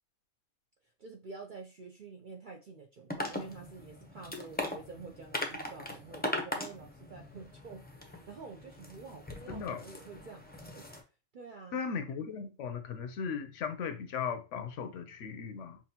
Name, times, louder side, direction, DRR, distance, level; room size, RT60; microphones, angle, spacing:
voice 1, 1.0-10.8 11.3-11.8, right 4 dB, 55° right, 0.5 m, -48 dB
sound 1, 3.1-11.0, left 1 dB, 10° left, 0.4 m, -40 dB
voice 2, 9.5-9.8 11.7-15.8, left 6 dB, 70° left, 0.9 m, -37 dB
5.9 x 2.5 x 2.8 m
omnidirectional pair, 1.4 m